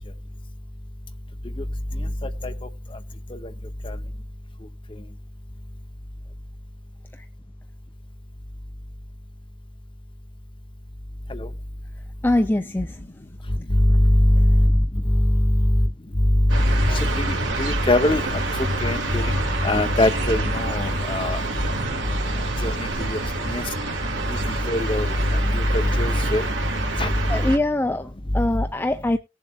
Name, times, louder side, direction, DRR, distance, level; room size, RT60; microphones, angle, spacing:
voice 1, 1.9-2.6 3.3-3.5 3.8-4.0 11.3-11.5 13.7-15.9 16.2-18.4 18.8-19.3 19.6-21.4 22.1-22.2 22.6-23.2 23.5-23.6 24.3-26.4 27.0-27.1, left 1 dB, 25° left, 0.9 m, -21 dB
voice 2, 12.2-13.0 16.9-17.0 27.3-29.2, left 1 dB, 10° left, 0.5 m, -23 dB
sound 1, 16.5-27.6, right 2 dB, 70° right, 2.3 m, -27 dB
19.0 x 7.3 x 2.4 m
head